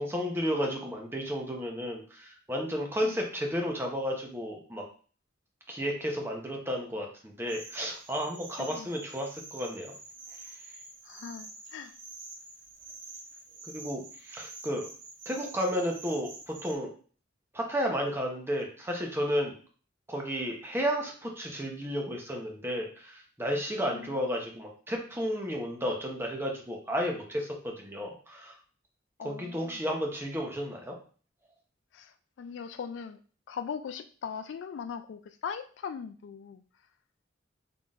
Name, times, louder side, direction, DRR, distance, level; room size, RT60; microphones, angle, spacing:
voice 1, 0.0-4.8 5.7-9.9 13.6-14.8 15.3-16.9 17.5-19.5 20.1-28.5 29.2-30.9, equal, 10° right, 1 dB, 0.7 m, -32 dB
sound 1, 7.5-16.7, right 3 dB, 70° right, 0.9 m, -47 dB
voice 2, 8.6-8.9 11.1-11.9 23.8-24.3 29.2-29.8 31.9-33.2 33.5-36.6, left 6 dB, 65° left, 11 dB, 0.3 m, -40 dB
3.9 x 3.7 x 2.4 m, 0.41 s
head